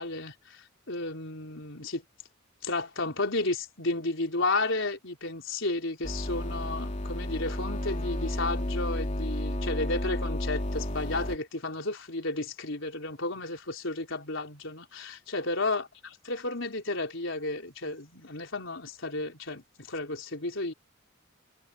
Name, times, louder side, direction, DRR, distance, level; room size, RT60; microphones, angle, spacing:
voice 1, 0.0-2.0 2.6-15.9 16.2-20.7, left 2 dB, 70° left, 4.4 m, -32 dB
sound 1, 6.0-11.4, left 1 dB, 35° left, 2.7 m, -32 dB
head